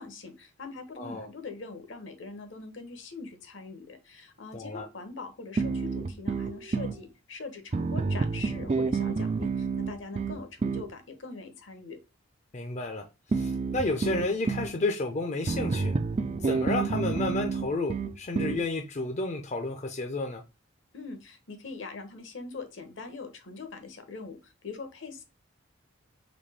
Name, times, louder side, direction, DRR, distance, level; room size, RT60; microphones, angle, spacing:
voice 1, 0.0-12.0 20.9-25.2, left 4 dB, 65° left, 1.0 m, -42 dB
voice 2, 1.0-1.3 4.5-4.9 12.5-15.9 16.4-20.4, left 2 dB, 35° left, 0.5 m, -31 dB
sound 1, 5.6-7.0 7.7-10.9 13.3-14.7 15.5-18.7, right 4 dB, 30° right, 0.3 m, -29 dB
4.1 x 3.1 x 3.3 m
head